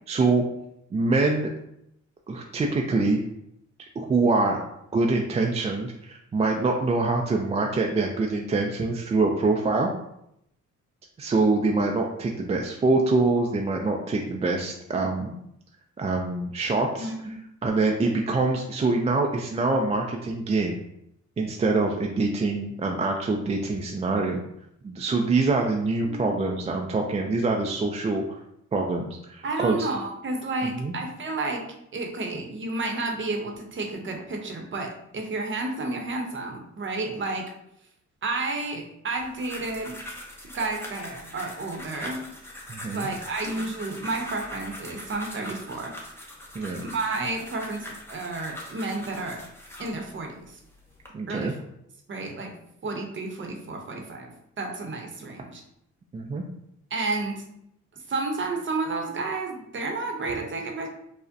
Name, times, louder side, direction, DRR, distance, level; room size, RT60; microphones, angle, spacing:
voice 1, 0.1-0.4 0.9-1.5 2.3-3.2 4.0-4.6 4.9-9.9 11.2-15.3 16.0-17.3 17.6-20.8 21.4-24.4 24.8-28.4 28.7-29.9 30.8-30.9 42.7-43.1 46.5-46.8 51.1-51.5 56.1-56.4, right 3 dB, 20° right, 1 dB, 0.3 m, -25 dB
voice 2, 17.0-17.4 26.0-26.3 29.4-31.7 31.9-37.5 38.2-40.0 40.5-42.2 42.9-46.0 46.8-49.5 49.8-50.6 51.3-51.5 52.1-52.5 52.8-55.6 56.9-57.4 58.1-60.9, right 3 dB, 40° right, 2 dB, 0.8 m, -31 dB
sound 1, 39.2-50.0 50.6-51.1, left 1 dB, 10° left, 0.8 m, -42 dB
4.9 x 2.1 x 2.6 m, 0.78 s
cardioid pair, 90°, 30 cm